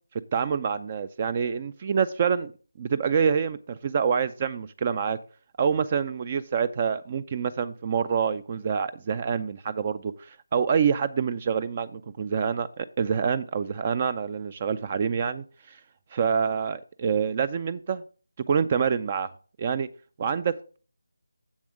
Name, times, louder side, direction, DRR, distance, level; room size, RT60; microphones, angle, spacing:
voice 1, 0.3-2.5 2.8-5.2 5.6-15.8 16.1-18.0 18.5-19.3 19.6-19.9 20.2-20.8, right 6 dB, 30° right, 16 dB, 0.4 m, -26 dB
7.6 x 7.1 x 5.0 m, 0.39 s
figure-of-eight pair, 160°, 0 cm